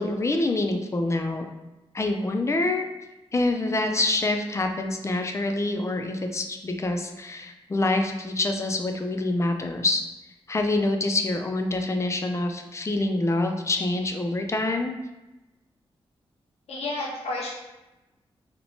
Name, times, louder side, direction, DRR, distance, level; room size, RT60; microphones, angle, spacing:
voice 1, 0.0-1.5 1.9-2.9 3.3-10.0 10.5-14.9, left 2 dB, 30° left, 4 dB, 0.4 m, -26 dB
voice 2, 16.7-17.5, left 2 dB, 80° left, -3 dB, 0.6 m, -31 dB
2.7 x 2.1 x 2.8 m, 1.0 s
cardioid pair, 65°, 10 cm